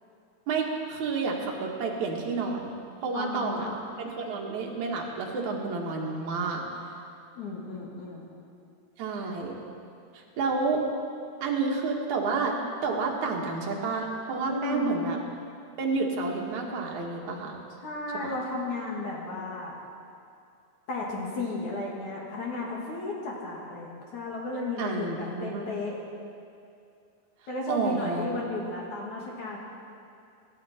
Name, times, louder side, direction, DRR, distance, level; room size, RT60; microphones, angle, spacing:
voice 1, 0.5-2.7 3.0-3.7 4.0-6.6 9.0-9.6 10.1-10.8 11.4-15.2 15.8-17.6 18.2-18.3 24.8-25.7 27.7-28.3, right 4 dB, 55° right, -1 dB, 2.4 m, -30 dB
voice 2, 3.1-3.8 7.3-8.3 14.4-15.0 17.8-19.8 20.9-26.0 27.5-29.6, left 2 dB, 50° left, -3 dB, 3.0 m, -34 dB
25.5 x 12.5 x 4.4 m, 2.5 s
omnidirectional pair, 5.3 m